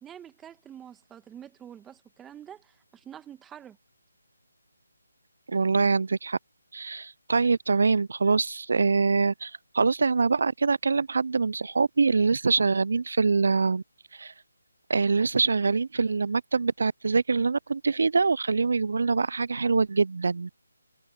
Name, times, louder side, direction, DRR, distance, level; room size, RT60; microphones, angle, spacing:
voice 1, 0.0-3.8, right 9 dB, 10° right, 1.5 m, -46 dB
voice 2, 5.5-6.4 6.7-13.8 14.1-14.3 14.9-20.5, right 4 dB, 65° right, 0.4 m, -24 dB
figure-of-eight pair, 160°, 0 cm